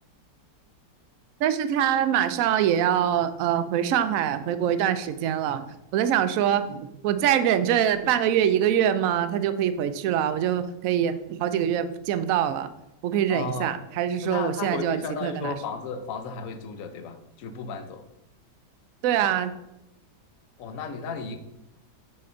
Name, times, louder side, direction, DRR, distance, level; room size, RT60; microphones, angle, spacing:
voice 1, 1.4-5.6 5.9-12.7 13.0-15.6 19.0-19.5, right 10 dB, 70° right, 11 dB, 0.8 m, -24 dB
voice 2, 13.3-13.8 14.2-18.0 20.6-21.4, left 5 dB, 60° left, 7 dB, 1.0 m, -34 dB
8.6 x 4.2 x 3.8 m, 0.87 s
omnidirectional pair, 1.8 m